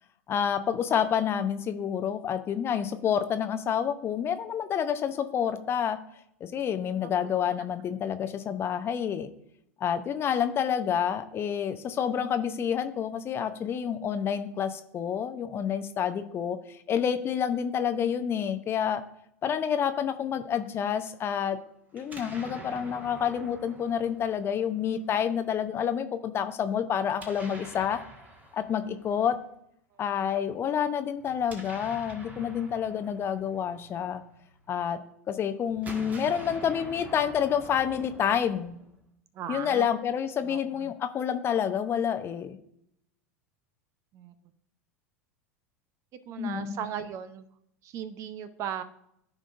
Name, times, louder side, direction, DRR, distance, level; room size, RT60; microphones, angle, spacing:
voice 1, 0.3-6.0 6.4-9.3 9.8-19.0 19.4-21.6 21.9-28.0 28.5-29.3 30.0-34.2 34.7-35.0 35.3-38.7 39.5-42.6 46.4-46.8, left 8 dB, 30° left, 10 dB, 0.7 m, -28 dB
voice 2, 6.8-7.5 29.9-30.3 39.3-39.9 40.4-40.9 44.1-44.3 46.3-47.5 47.8-48.8, right 9 dB, 40° right, 13 dB, 0.7 m, -38 dB
Explosion, 21.9-25.0 27.1-29.3 31.2-34.6 35.7-39.1, right 1 dB, 20° right, 1.5 m, -46 dB
14.5 x 5.1 x 2.6 m, 0.73 s
figure-of-eight pair, 85°, 8 cm